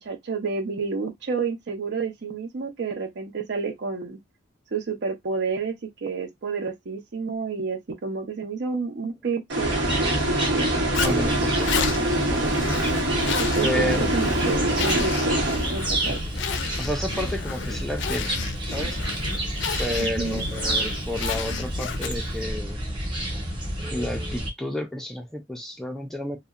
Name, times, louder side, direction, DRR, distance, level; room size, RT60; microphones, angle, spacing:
voice 1, 0.0-4.2 4.7-5.7 6.0-10.7 13.4-16.2 20.0-20.4, right 4 dB, 65° right, 0.6 m, -30 dB
sound 1, 9.5-16.2, right 1 dB, 85° right, 0.9 m, -25 dB
sound 2, 9.6-24.5, right 1 dB, 25° right, 0.8 m, -29 dB
Zipper (clothing), 10.9-22.4, left 6 dB, 70° left, 0.4 m, -32 dB
voice 2, 11.0-11.7 12.0-12.7 13.6-14.1 16.8-18.3 18.7-19.0 19.8-22.8 23.8-26.4, left 1 dB, ahead, 0.3 m, -31 dB
2.7 x 2.0 x 2.4 m
head